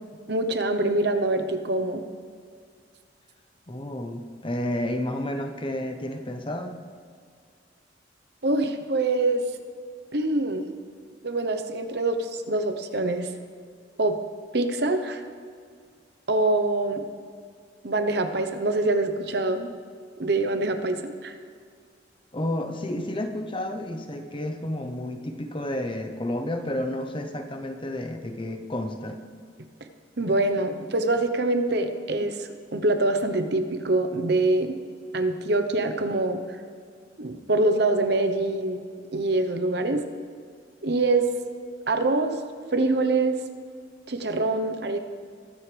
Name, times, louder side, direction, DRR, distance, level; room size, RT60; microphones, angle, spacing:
voice 1, 0.3-2.0 8.4-9.4 10.1-10.7 11.2-13.3 14.0-14.2 14.5-15.2 16.3-17.0 17.8-19.7 20.2-21.4 30.2-34.8 35.1-36.4 37.2-38.8 39.1-40.0 40.8-41.3 41.9-42.4 42.7-43.4 44.1-45.0, right 2 dB, 60° right, 7 dB, 0.9 m, -24 dB
voice 2, 3.7-6.8 22.3-29.2, left 1 dB, 25° left, 6 dB, 0.9 m, -31 dB
22.0 x 9.4 x 3.4 m, 2.1 s
head